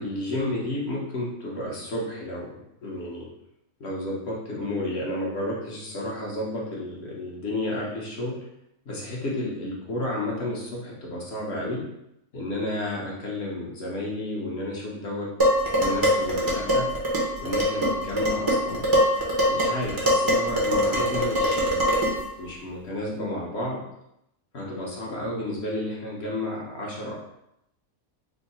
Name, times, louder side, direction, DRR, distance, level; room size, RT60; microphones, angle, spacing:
voice 1, 0.0-3.3 3.8-8.4 8.9-11.8 12.3-15.3 15.8-16.9 17.4-18.8 19.4-22.0 22.4-23.8 24.5-27.2, left 1 dB, 55° left, -4 dB, 1.0 m, -31 dB
Dishes pots and pans, 15.4-22.3, equal, 30° right, 0.4 m, -23 dB
3.5 x 2.0 x 4.0 m, 0.82 s
omnidirectional pair, 1.5 m